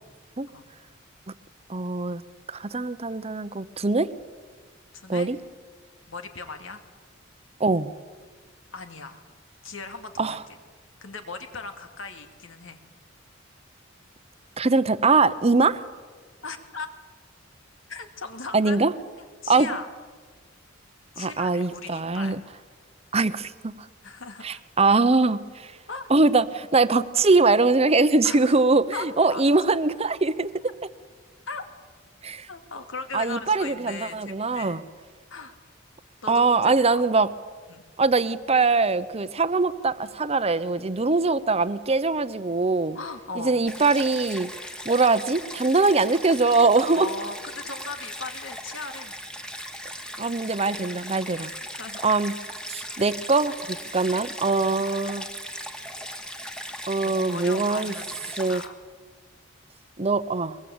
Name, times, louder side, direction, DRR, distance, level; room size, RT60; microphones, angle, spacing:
voice 1, 1.7-2.2 2.5-4.1 5.1-5.4 7.6-7.9 10.2-10.4 14.6-15.9 18.5-18.9 19.5-19.7 21.2-22.4 23.1-23.7 24.4-25.7 26.1-30.5 32.2-32.5 33.1-34.8 36.3-37.3 38.0-43.0 43.4-44.5 44.8-47.1 50.2-51.5 52.0-52.3 52.7-55.2 56.9-57.9 58.4-58.6 60.0-60.6, right 3 dB, 30° right, 14 dB, 0.9 m, -22 dB
voice 2, 6.1-6.8 8.7-9.2 9.6-10.6 11.0-12.8 16.4-16.9 17.9-18.8 19.2-19.9 21.2-22.4 24.0-24.6 25.9-26.1 28.2-28.6 28.9-29.1 29.3-29.4 31.5-31.7 32.5-34.8 35.3-35.5 36.2-36.9 37.7-37.8 42.9-43.6 46.8-49.1 51.6-52.0 54.6-54.8 57.0-58.7, left 4 dB, 80° left, 6 dB, 2.6 m, -38 dB
Stream, 43.7-58.7, equal, 5° left, 1.4 m, -38 dB
23.0 x 22.0 x 8.7 m, 1.5 s
head